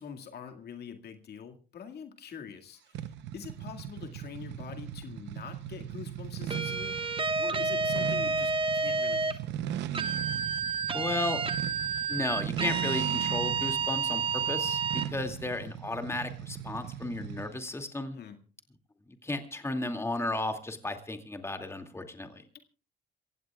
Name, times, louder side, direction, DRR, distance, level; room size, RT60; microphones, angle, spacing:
voice 1, 0.0-7.0 7.4-9.6 18.1-18.4 22.1-22.2, left 7 dB, 65° left, 5 dB, 2.0 m, -45 dB
sound 1, 2.9-17.6, right 10 dB, 90° right, 0.8 m, -39 dB
sound 2, 6.5-9.4 9.9-15.1, right 4 dB, 30° right, 1.4 m, -30 dB
voice 2, 10.9-11.4 12.1-14.2 14.5-18.2 19.2-22.4, left 2 dB, 15° left, 5 dB, 2.4 m, -34 dB
27.0 x 16.0 x 2.4 m, 0.36 s
cardioid pair, 90°, 18 cm